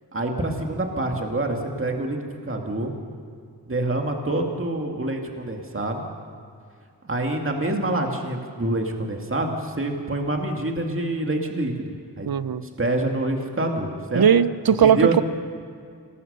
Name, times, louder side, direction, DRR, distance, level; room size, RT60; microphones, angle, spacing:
voice 1, 0.1-2.9 3.7-6.0 7.0-11.9 12.2-12.3 12.8-14.3 14.8-15.2, right 2 dB, 35° right, 2 dB, 2.3 m, -26 dB
voice 2, 12.3-12.6 14.1-15.2, right 8 dB, 65° right, 15 dB, 0.8 m, -18 dB
25.5 x 19.0 x 6.8 m, 2.3 s
wide cardioid pair, 90°, 38 cm